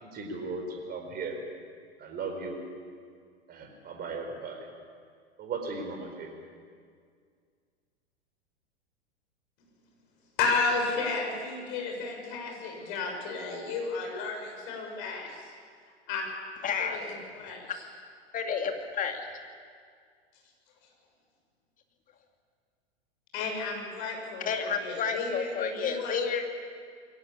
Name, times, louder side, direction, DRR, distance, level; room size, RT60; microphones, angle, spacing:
voice 1, 0.0-1.3 2.0-2.6 3.5-4.7 5.4-6.3, right 4 dB, 30° right, 4 dB, 4.6 m, -37 dB
voice 2, 10.4-15.4 16.1-16.2 16.8-17.8 23.3-26.1, left 4 dB, 50° left, 1 dB, 7.0 m, -33 dB
voice 3, 16.6-17.0 17.5-17.6 18.3-19.3 24.5-26.5, left 6 dB, 25° left, 4 dB, 2.4 m, -31 dB
22.5 x 18.0 x 8.6 m, 2.1 s
figure-of-eight pair, 95°, 33 cm